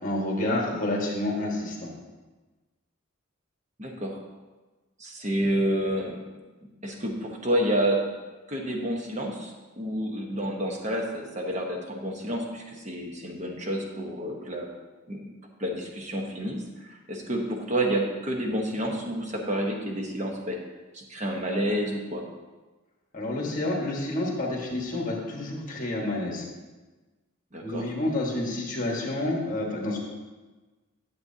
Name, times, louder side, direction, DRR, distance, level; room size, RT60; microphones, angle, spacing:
voice 1, 0.0-1.9 23.1-26.4 27.6-30.0, left 1 dB, 40° left, -1 dB, 1.6 m, -29 dB
voice 2, 3.8-4.2 5.0-6.2 6.8-8.1 8.5-14.7 15.1-15.3 15.6-20.6 20.9-22.2 27.5-27.9, right 1 dB, 35° right, 1 dB, 1.1 m, -29 dB
11.0 x 7.5 x 2.8 m, 1.2 s
head